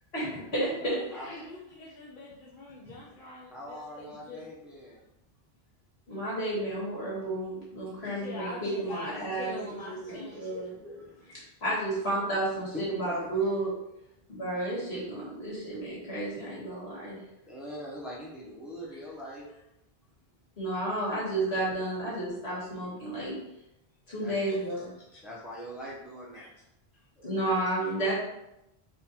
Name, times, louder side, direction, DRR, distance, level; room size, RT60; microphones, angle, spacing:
voice 1, 0.1-1.4 6.1-10.6 11.6-13.7 14.3-17.2 20.6-23.4 24.1-25.2 26.3-26.5 27.2-28.1, right 1 dB, 75° left, -7 dB, 2.0 m, -32 dB
voice 2, 0.8-4.4 8.0-10.4, left 2 dB, 55° left, -6 dB, 0.9 m, -43 dB
voice 3, 3.5-5.0 10.1-11.4 12.7-13.3 17.5-19.6 24.2-24.6 25.2-26.5 27.2-27.6, equal, ahead, -5 dB, 0.8 m, -43 dB
4.0 x 2.7 x 4.3 m, 0.87 s
omnidirectional pair, 1.1 m